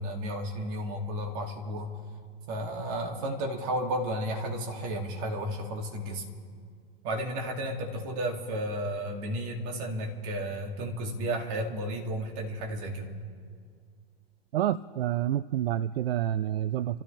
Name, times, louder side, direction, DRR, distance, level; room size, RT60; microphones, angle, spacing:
voice 1, 0.0-1.9 2.5-6.2 7.0-13.1, equal, 45° right, 1 dB, 2.8 m, -33 dB
voice 2, 14.5-17.0, right 12 dB, 75° right, 16 dB, 0.6 m, -28 dB
29.5 x 13.5 x 3.5 m, 2.2 s
hypercardioid pair, 115°, 30 cm